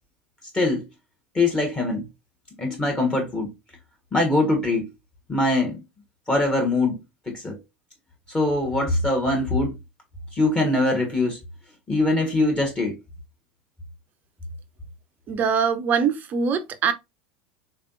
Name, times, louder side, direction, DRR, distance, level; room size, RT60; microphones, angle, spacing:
voice 1, 1.3-2.0 2.6-3.5 4.1-4.9 5.3-5.8 6.3-7.0 7.3-7.6 8.3-9.7 10.3-11.4 11.9-12.9, left 2 dB, 20° left, 1.2 m, -22 dB
voice 2, 15.3-16.9, right 6 dB, 35° right, 0.6 m, -23 dB
3.6 x 3.3 x 2.6 m
figure-of-eight pair, 75°, 5 cm